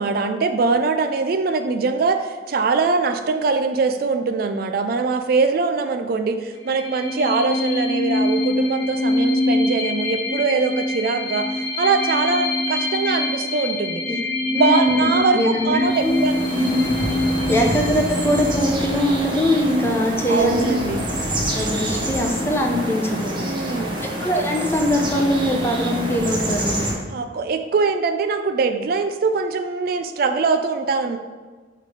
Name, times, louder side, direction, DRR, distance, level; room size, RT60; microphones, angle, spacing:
voice 1, 0.0-11.5 11.8-14.0 14.4-16.4 20.3-21.0 23.4-24.0 27.1-31.2, right 4 dB, 55° right, 7 dB, 0.4 m, -22 dB
sound 1, 6.6-20.0, left 1 dB, 80° left, 1.2 m, -24 dB
voice 2, 14.5-16.2 16.5-16.9 17.5-20.8 21.5-23.4 24.2-26.7, equal, 15° left, 2 dB, 0.6 m, -22 dB
sound 2, 15.8-26.9, right 1 dB, 25° right, 1.0 m, -26 dB
5.8 x 3.2 x 5.0 m, 1.4 s
head